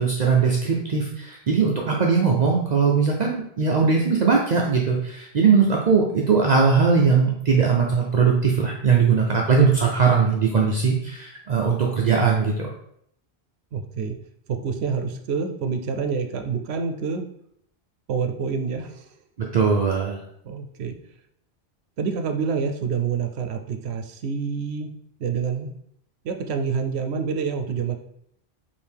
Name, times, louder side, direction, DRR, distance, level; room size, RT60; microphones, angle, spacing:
voice 1, 0.0-12.7 19.4-20.2, right 5 dB, 55° right, -1 dB, 0.5 m, -20 dB
voice 2, 13.7-14.2 14.5-17.3 18.1-19.1 20.4-20.9 22.0-24.9 25.2-25.7 26.2-28.0, right 5 dB, 80° right, 6 dB, 0.8 m, -27 dB
4.5 x 2.8 x 3.4 m, 0.71 s
omnidirectional pair, 1.1 m